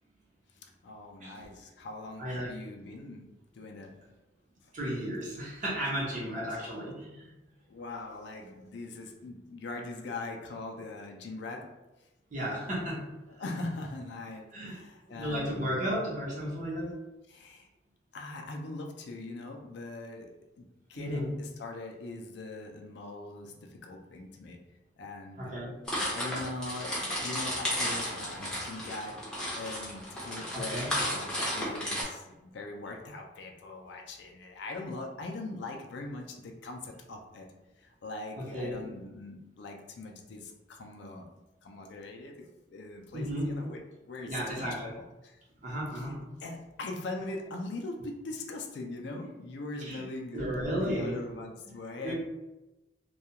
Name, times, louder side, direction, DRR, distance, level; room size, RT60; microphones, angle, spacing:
voice 1, 0.5-3.3 3.5-3.9 4.6-4.7 6.5-6.6 7.7-11.7 13.3-15.8 17.3-17.7 18.1-24.6 25.0-25.6 26.1-29.3 29.5-41.3 41.6-44.7 44.9-45.4 45.9-46.1 46.4-52.1, left 2 dB, 60° left, 3 dB, 0.3 m, -41 dB
voice 2, 2.2-2.5 4.7-7.3 12.3-13.0 14.5-14.8 15.1-16.9 21.0-21.3 25.4-25.7 30.5-30.9 31.9-32.0 38.5-38.8 43.1-43.5 44.3-44.9 45.6-46.2 49.8-50.0 50.3-51.2 52.0-52.1, equal, 40° right, -5 dB, 0.7 m, -34 dB
sound 1, 25.9-32.0, equal, 5° left, 0.5 m, -33 dB
2.3 x 2.2 x 2.8 m, 1.0 s
head